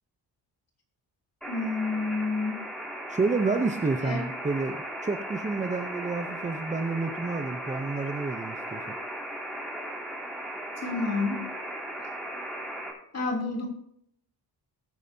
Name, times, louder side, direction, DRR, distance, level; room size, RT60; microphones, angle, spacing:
voice 1, 1.4-2.6 4.0-4.3 10.8-11.5 13.1-13.7, left 3 dB, 35° left, 1 dB, 3.0 m, -29 dB
sound 1, 1.4-12.9, right 1 dB, ahead, 3.1 m, -37 dB
voice 2, 3.1-8.8, right 3 dB, 15° right, 5 dB, 0.6 m, -29 dB
19.5 x 9.7 x 2.7 m, 0.70 s
wide cardioid pair, 170°, 42 cm